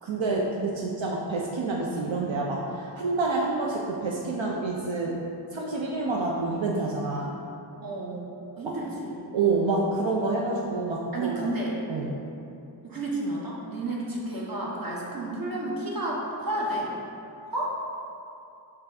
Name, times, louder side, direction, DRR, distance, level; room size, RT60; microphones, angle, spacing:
voice 1, 0.0-5.2 5.5-7.3 8.6-8.8 9.3-11.3 11.9-12.1, right 3 dB, 80° right, -3 dB, 0.7 m, -28 dB
voice 2, 7.8-8.3 8.6-9.2 11.1-12.1 12.8-16.9 17.5-17.8, right 1 dB, 50° right, -3 dB, 1.1 m, -31 dB
5.5 x 3.5 x 4.9 m, 2.7 s
wide cardioid pair, 60°, 45 cm